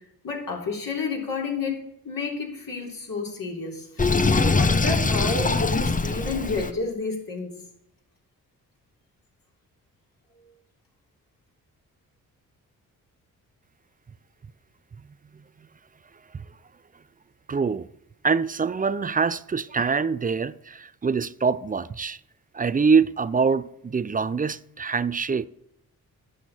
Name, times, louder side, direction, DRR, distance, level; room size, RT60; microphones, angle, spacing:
voice 1, 0.2-1.8 2.0-7.5, left 3 dB, 55° left, 3.8 m, -30 dB
Sink (filling or washing), 4.0-6.7, left 3 dB, 20° left, 0.9 m, -22 dB
voice 2, 17.5-17.9 18.2-22.2 22.5-25.5, right 5 dB, 20° right, 0.5 m, -24 dB
11.5 x 7.1 x 4.4 m
hypercardioid pair, 40°, 41 cm